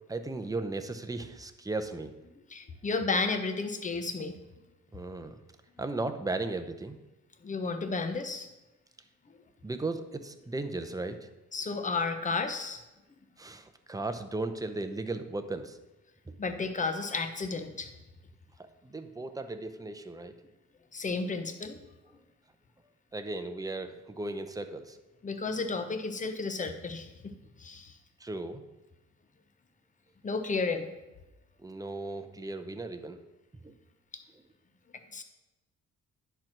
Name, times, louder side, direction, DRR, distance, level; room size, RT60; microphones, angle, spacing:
voice 1, 0.1-2.1 4.9-5.4 5.8-7.0 9.6-11.3 13.4-15.8 18.8-20.3 23.1-25.0 28.2-28.6 31.6-33.2 33.6-33.7, right 2 dB, 10° right, 8 dB, 0.8 m, -36 dB
voice 2, 2.5-4.4 7.4-8.5 11.5-12.8 16.4-17.9 20.9-21.8 25.2-27.3 27.6-27.9 30.2-30.9 34.9-35.2, left 4 dB, 25° left, 7 dB, 0.9 m, -32 dB
10.0 x 4.6 x 6.1 m, 1.0 s
cardioid pair, 90°, 30 cm